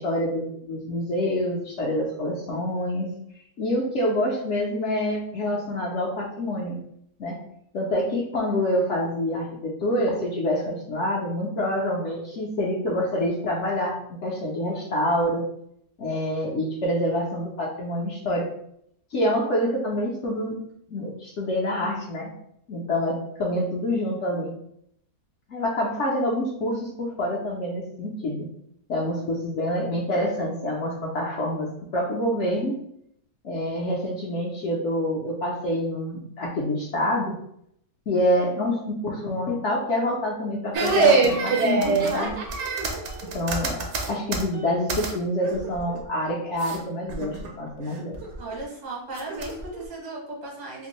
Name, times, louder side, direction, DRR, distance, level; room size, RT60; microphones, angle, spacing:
voice 1, 0.0-3.1 3.6-6.8 7.2-7.4 7.7-14.0 14.2-15.4 16.0-18.5 19.1-20.6 20.9-22.3 22.7-24.5 25.5-28.5 28.9-32.8 33.4-37.3 38.1-42.3 43.3-48.2, left 1 dB, 60° left, -3 dB, 0.8 m, -26 dB
sound 1, 40.7-45.2 45.4-46.0 46.6-46.8 47.1-47.5 48.0-48.5 49.2-49.8, right 4 dB, 60° right, 0.8 m, -24 dB
voice 2, 48.4-50.9, right 2 dB, 80° right, -3 dB, 1.7 m, -36 dB
3.4 x 2.5 x 3.0 m, 0.72 s
omnidirectional pair, 1.7 m